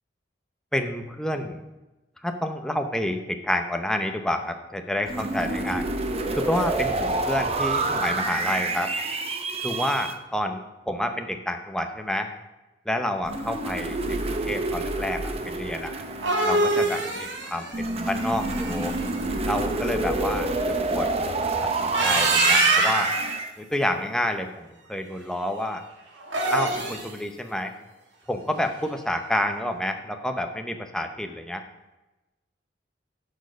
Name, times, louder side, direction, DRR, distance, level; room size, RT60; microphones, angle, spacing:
voice 1, 0.7-1.6 2.2-5.8 6.3-8.9 9.6-12.3 12.9-15.9 16.4-18.9 19.4-20.5 20.9-21.3 21.6-23.1 23.6-25.8 26.5-27.7 28.3-31.6, left 1 dB, 5° left, 5 dB, 0.8 m, -29 dB
sound 1, 5.1-10.1 13.2-17.0 17.7-23.5, right 2 dB, 35° right, 0.9 m, -28 dB
sound 2, 15.9-19.0 21.7-23.2 26.2-27.1, right 2 dB, 80° right, 1.8 m, -24 dB
11.5 x 6.4 x 5.2 m, 1.1 s
head